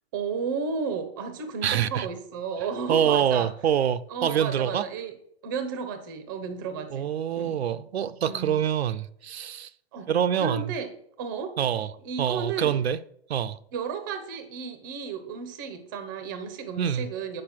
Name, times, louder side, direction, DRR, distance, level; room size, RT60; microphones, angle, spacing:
voice 1, 0.1-3.5 4.1-5.1 5.4-7.6 8.2-8.6 9.9-10.1 10.4-10.9 11.2-11.6 12.0-12.8 13.7-17.4, right 5 dB, 20° right, 0.7 m, -33 dB
voice 2, 1.6-2.1 2.9-4.9 6.9-9.7 10.1-10.7 11.6-11.9 12.2-13.0 13.3-13.6 16.8-17.1, right 9 dB, 75° right, 0.7 m, -25 dB
8.8 x 5.4 x 5.9 m
hypercardioid pair, 175°, 32 cm